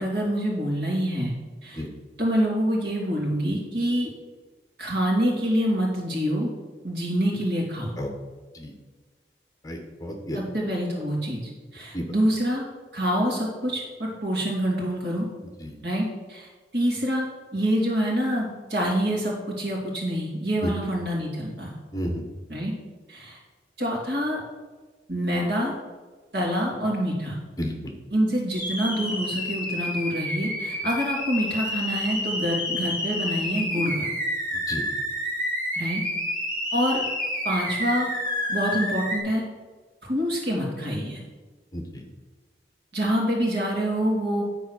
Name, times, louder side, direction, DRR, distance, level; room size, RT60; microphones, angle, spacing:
voice 1, 0.0-1.3 1.6-1.8 2.2-4.1 4.8-6.5 6.8-7.9 10.3-11.4 11.7-12.6 12.9-15.3 15.8-17.3 17.5-21.8 22.5-22.7 23.1-23.4 23.8-24.4 25.1-25.7 26.3-27.4 28.1-34.1 35.8-36.0 36.7-37.0 37.4-38.1 38.5-39.4 40.1-41.2 42.9-44.4, equal, 80° right, -3 dB, 3.1 m, -26 dB
voice 2, 9.6-10.4 11.9-12.1 15.6-15.8 20.6-20.7 21.9-22.2 27.6-27.9 34.7-34.8 41.7-42.0, equal, 20° left, 3 dB, 1.1 m, -31 dB
sound 1, 28.5-39.2, left 1 dB, 50° right, 3.3 m, -29 dB
10.0 x 4.6 x 6.4 m, 1.4 s
head